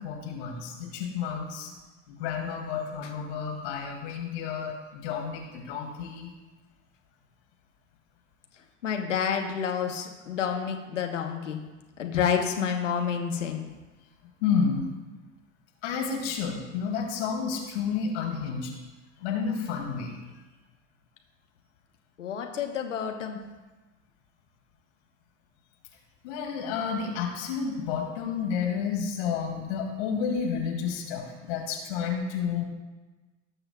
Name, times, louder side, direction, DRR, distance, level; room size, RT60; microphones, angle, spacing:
voice 1, 0.0-1.7 2.1-6.3 14.4-14.9 15.8-18.7 19.2-20.2 26.2-32.6, left 6 dB, 65° left, 1 dB, 2.4 m, -30 dB
voice 2, 8.8-11.6 12.0-13.7 22.2-23.4, left 7 dB, 80° left, 3 dB, 1.2 m, -29 dB
18.5 x 6.7 x 2.3 m, 1.2 s
figure-of-eight pair, 75°, 37 cm